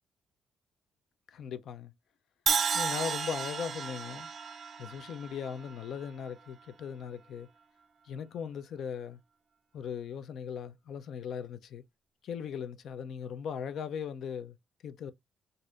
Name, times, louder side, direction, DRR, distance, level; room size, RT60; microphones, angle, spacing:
voice 1, 1.3-1.9 2.7-4.3 4.8-7.5 8.0-9.2 9.7-11.8 12.2-14.6 14.8-15.1, left 7 dB, 70° left, 0.5 m, -38 dB
Crash cymbal, 2.5-6.5, right 6 dB, 50° right, 0.4 m, -33 dB
4.1 x 2.5 x 2.4 m
cardioid pair, 90°, 0 cm